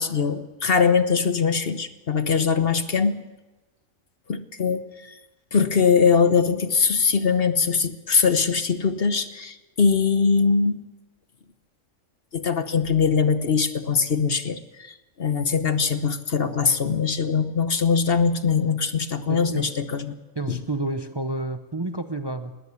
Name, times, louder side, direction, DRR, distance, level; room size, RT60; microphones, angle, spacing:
voice 1, 0.0-3.3 4.3-4.8 5.5-10.8 12.3-20.1, left 5 dB, 50° left, 10 dB, 1.2 m, -22 dB
voice 2, 19.3-19.7 20.3-22.6, right 2 dB, 25° right, 8 dB, 0.7 m, -30 dB
20.0 x 18.5 x 8.3 m, 1.1 s
omnidirectional pair, 1.4 m